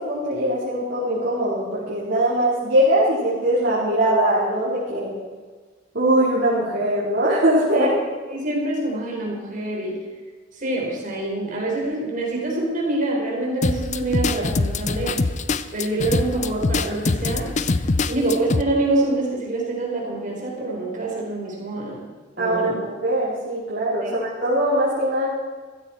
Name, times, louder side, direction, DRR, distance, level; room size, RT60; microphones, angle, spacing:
voice 1, 0.0-5.1 5.9-7.9 18.0-18.2 22.4-25.3, right 1 dB, 60° right, -9 dB, 4.4 m, -21 dB
voice 2, 8.3-10.0 10.5-15.2 15.7-17.6 18.1-22.0 22.4-22.7 24.0-24.1, right 2 dB, 45° right, -2 dB, 4.2 m, -26 dB
sound 1, 13.6-18.6, left 3 dB, 40° left, 0.6 m, -23 dB
15.5 x 14.5 x 4.5 m, 1.4 s
head